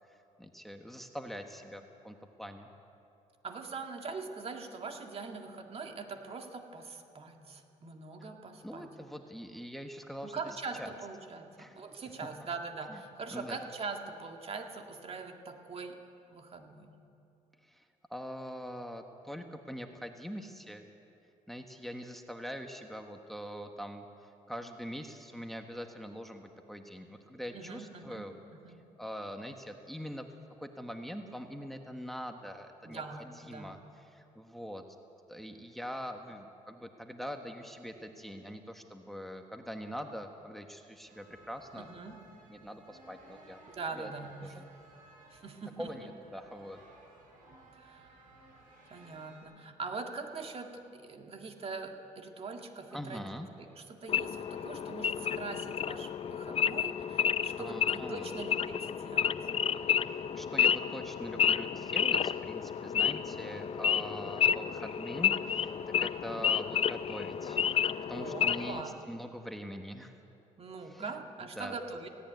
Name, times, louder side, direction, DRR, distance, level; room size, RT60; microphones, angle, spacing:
voice 1, 0.0-2.7 8.2-8.3 8.6-10.9 11.6-11.8 12.9-13.0 13.3-13.7 17.6-17.8 18.1-20.9 21.5-28.3 29.0-30.3 30.6-33.8 34.0-34.8 35.3-41.9 42.5-43.6 44.0-44.1 44.4-44.6 45.8-46.8 52.9-53.5 57.6-58.3 60.0-65.7 66.0-67.6 68.1-70.2 70.8-71.1 71.6-71.7, equal, ahead, 5 dB, 1.3 m, -43 dB
voice 2, 3.4-8.9 10.2-16.0 16.3-16.9 27.5-28.3 28.5-28.8 32.8-33.8 41.8-42.2 43.7-44.6 45.3-46.1 47.8-48.2 48.9-59.4 66.3-66.5 68.1-69.0 70.6-72.1, right 4 dB, 45° right, 4 dB, 2.0 m, -42 dB
sound 1, 41.0-49.4, right 2 dB, 85° right, 6.8 m, -58 dB
Wild animals / Idling, 54.1-68.8, left 8 dB, 45° left, 0.6 m, -31 dB
18.0 x 17.0 x 9.2 m, 2.7 s
cardioid pair, 95°, 14 cm